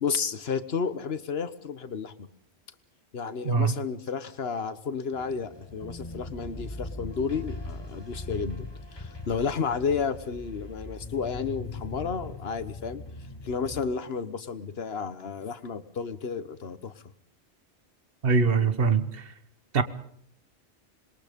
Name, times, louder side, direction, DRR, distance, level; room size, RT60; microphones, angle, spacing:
voice 1, 0.0-2.1 3.1-13.0 13.4-16.9, left 5 dB, 65° left, 1.4 m, -32 dB
sound 1, 5.1-13.8, left 2 dB, 25° left, 1.5 m, -40 dB
voice 2, 18.2-19.3 19.7-19.8, right 5 dB, 60° right, 1.4 m, -23 dB
26.5 x 21.5 x 5.3 m
omnidirectional pair, 1.1 m